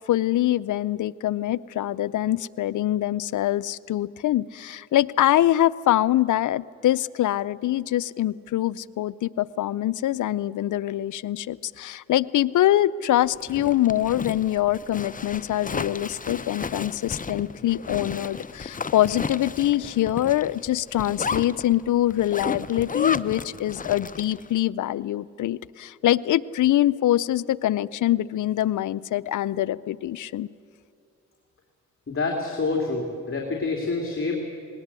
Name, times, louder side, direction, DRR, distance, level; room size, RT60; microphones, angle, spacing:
voice 1, 0.1-30.5, left 13 dB, 70° left, 20 dB, 0.5 m, -24 dB
Zipper (clothing), 13.3-24.5, left 5 dB, 25° left, 0.7 m, -33 dB
voice 2, 32.1-34.4, left 3 dB, 40° left, 0 dB, 2.9 m, -27 dB
19.5 x 19.0 x 8.2 m, 2.4 s
cardioid pair, 65°, 31 cm